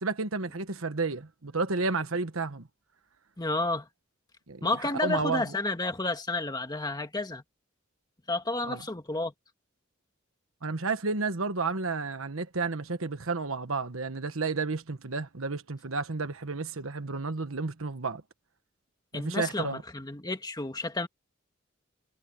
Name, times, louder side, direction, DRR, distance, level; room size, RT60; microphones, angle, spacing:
voice 1, 0.0-2.7 4.5-4.6 5.0-5.4 8.6-8.8 10.6-18.2 19.1-19.8, right 4 dB, 80° right, 1.3 m, -31 dB
voice 2, 3.4-3.9 4.6-7.4 8.3-9.3 19.1-21.1, left 2 dB, 20° left, 1.7 m, -31 dB
head